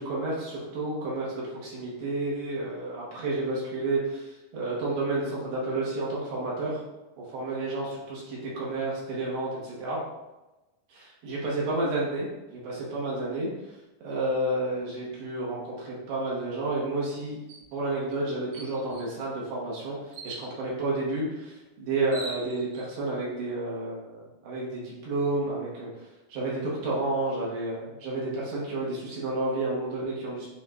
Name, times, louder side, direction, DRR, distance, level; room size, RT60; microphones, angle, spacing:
voice 1, 0.0-6.8 7.3-10.0 11.2-13.5 14.0-17.4 17.7-25.9 26.3-30.5, right 2 dB, 65° right, -5 dB, 3.1 m, -31 dB
sound 1, 17.5-17.7 18.1-18.2 18.5-19.1 20.1-20.5 21.6-21.7 22.0-22.9, right 2 dB, 90° right, 3.5 m, -41 dB
10.5 x 3.7 x 2.4 m, 1.0 s
omnidirectional pair, 5.4 m